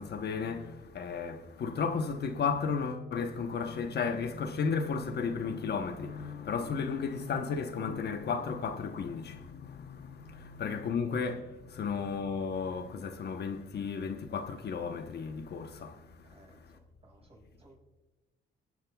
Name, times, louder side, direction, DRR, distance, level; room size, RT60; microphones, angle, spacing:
voice 1, 0.0-16.7, left 5 dB, 55° left, 1.0 m, -34 dB
voice 2, 16.2-17.8, right 2 dB, 30° right, 5.1 m, -60 dB
27.5 x 9.4 x 2.3 m
cardioid pair, 90°, 20 cm